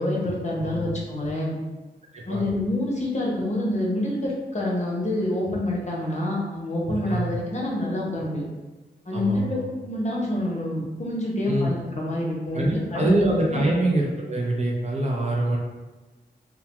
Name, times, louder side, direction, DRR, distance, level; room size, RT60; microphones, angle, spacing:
voice 1, 0.0-1.6 2.3-8.4 9.1-13.1 13.5-13.7, left 1 dB, 40° left, -3 dB, 0.7 m, -27 dB
voice 2, 0.6-0.9 2.1-2.4 6.9-7.3 9.1-9.6 11.5-11.8 12.5-15.6, right 1 dB, 40° right, -2 dB, 0.6 m, -24 dB
2.3 x 2.1 x 2.8 m, 1.2 s
cardioid pair, 50°, 19 cm